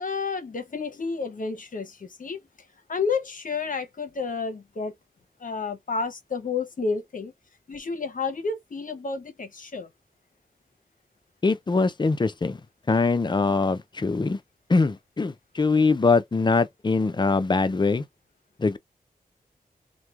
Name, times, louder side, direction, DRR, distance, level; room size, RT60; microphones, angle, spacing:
voice 1, 0.0-2.4 2.9-4.9 5.4-7.3 7.7-9.9, left 4 dB, 60° left, 0.8 m, -30 dB
voice 2, 11.4-12.6 12.9-14.4 14.7-18.0 18.6-18.8, left 4 dB, 30° left, 0.5 m, -22 dB
3.0 x 2.2 x 2.4 m
cardioid pair, 50°, 16 cm